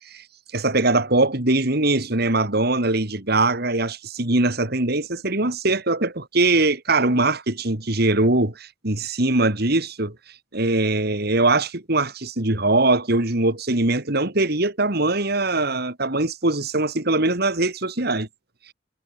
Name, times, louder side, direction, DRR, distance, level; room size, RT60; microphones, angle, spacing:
voice 1, 0.5-10.1 10.5-18.3, right 2 dB, 60° right, 3.3 m, -21 dB
head